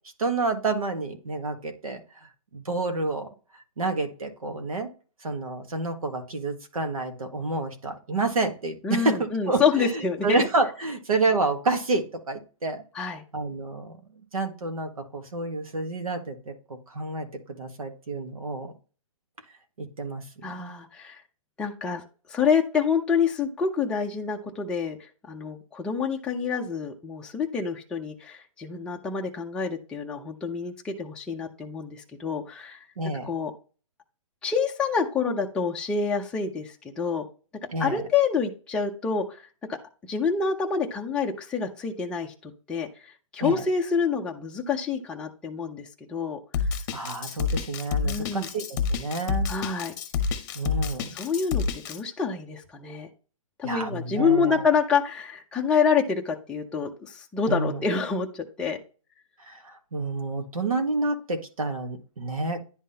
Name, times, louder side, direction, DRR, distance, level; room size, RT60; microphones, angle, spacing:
voice 1, 0.2-2.0 2.5-3.3 3.8-4.9 5.2-12.8 13.3-18.7 19.8-20.2 20.6-20.7 33.0-33.3 37.7-38.0 43.4-43.6 46.9-49.5 50.5-51.1 53.6-54.7 57.5-57.8 59.4-62.6, right 3 dB, 85° right, 6 dB, 1.6 m, -29 dB
voice 2, 8.8-10.5 12.9-13.2 20.4-21.2 21.6-22.0 22.3-25.0 25.3-32.9 33.2-33.5 34.4-37.3 37.8-39.4 39.7-39.8 40.1-42.9 43.3-46.4 48.0-48.5 49.5-49.9 51.1-53.1 53.6-58.8, left 5 dB, 5° left, 0 dB, 0.5 m, -27 dB
Drum kit, 46.5-52.0, left 5 dB, 35° left, 0.8 m, -28 dB
10.5 x 3.6 x 2.8 m, 0.36 s
hypercardioid pair, 150°, 18 cm